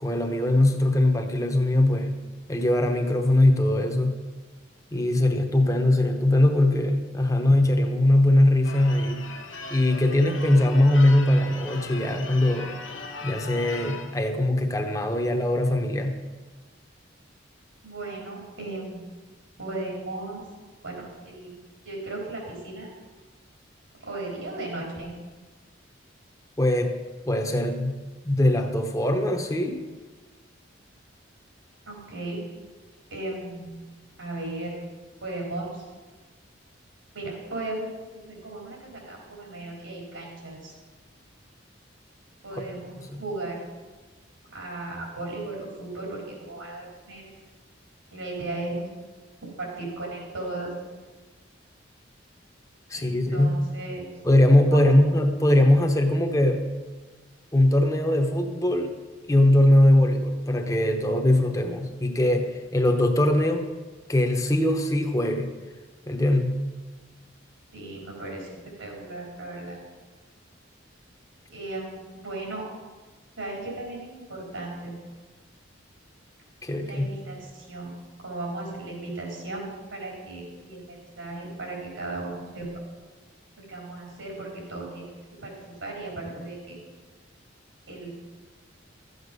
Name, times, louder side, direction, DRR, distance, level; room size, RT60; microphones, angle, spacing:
voice 1, 0.0-2.1 2.5-4.3 4.9-9.3 9.7-12.7 13.2-16.2 26.6-27.0 27.3-29.8 43.1-43.2 52.9-53.6 54.2-56.7 57.5-59.0 59.3-63.7 64.1-65.5 66.1-66.7 76.6-77.1, left 1 dB, 15° left, 4 dB, 0.9 m, -21 dB
Church bell / Car / Alarm, 8.6-14.2, left 4 dB, 80° left, 1.1 m, -39 dB
voice 2, 17.8-19.1 19.6-20.4 20.8-21.5 21.8-22.9 24.0-25.1 31.9-32.4 33.1-33.9 34.2-34.8 35.2-35.9 37.1-37.9 38.3-40.7 42.4-43.6 44.5-47.3 48.1-48.9 49.6-50.7 52.9-54.1 54.7-54.9 67.7-68.5 68.8-69.8 71.5-72.6 73.4-75.0 76.8-79.6 79.9-82.7 83.6-85.1 85.4-86.8 87.9-88.2, right 2 dB, 90° right, -3 dB, 4.1 m, -36 dB
13.0 x 8.1 x 5.4 m, 1.3 s
head